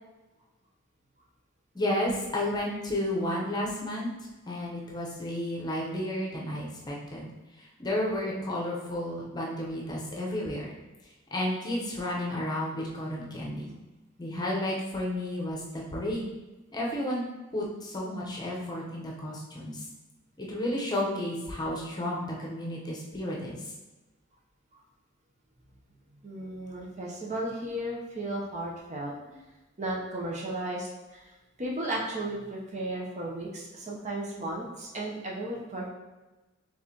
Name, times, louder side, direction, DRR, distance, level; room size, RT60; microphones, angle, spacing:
voice 1, 1.7-4.1 4.5-7.3 7.8-10.7 11.3-13.7 14.2-16.3 16.7-17.2 17.5-19.8 20.4-23.6, left 1 dB, 20° left, -3 dB, 0.8 m, -32 dB
voice 2, 26.2-29.1 29.8-35.9, right 1 dB, 35° right, -3 dB, 0.7 m, -35 dB
4.7 x 3.5 x 2.9 m, 1.1 s
head